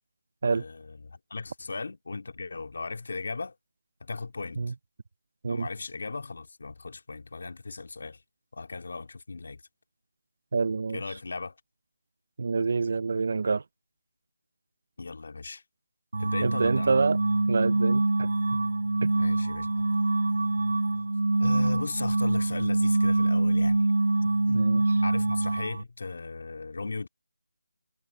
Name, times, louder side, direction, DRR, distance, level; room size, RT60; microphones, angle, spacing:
voice 1, 0.5-3.6 4.0-4.7 5.5-8.2 8.5-9.6 10.9-11.6 15.0-15.6 16.2-17.0 19.2-19.7 21.4-23.9 24.2-24.7 25.0-27.1, left 3 dB, 50° left, 2.4 m, -37 dB
voice 2, 10.5-11.0 12.4-13.6 16.4-17.2 17.5-18.3 19.0-19.1 24.5-24.8, right 4 dB, 40° right, 0.5 m, -27 dB
sound 1, 16.1-25.8, right 2 dB, 65° right, 1.6 m, -25 dB
figure-of-eight pair, 175°, 0 cm